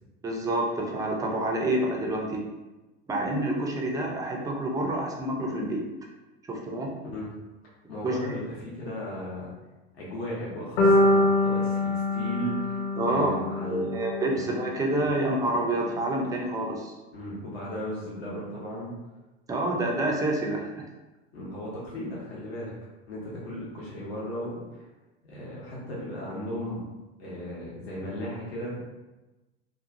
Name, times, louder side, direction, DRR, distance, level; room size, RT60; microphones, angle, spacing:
voice 1, 0.2-2.4 3.1-5.8 6.5-6.9 8.0-8.2 13.0-13.3 13.6-16.9 19.5-20.9, right 1 dB, 10° right, 0 dB, 0.4 m, -28 dB
voice 2, 7.9-9.5 10.0-14.0 17.1-18.9 21.3-22.7 23.1-24.7 25.3-26.8 27.2-28.8, equal, 70° left, -6 dB, 1.0 m, -36 dB
sound 1, 10.8-14.9, left 1 dB, 35° left, 0.7 m, -25 dB
2.6 x 2.4 x 2.5 m, 1.1 s
figure-of-eight pair, 85°, 32 cm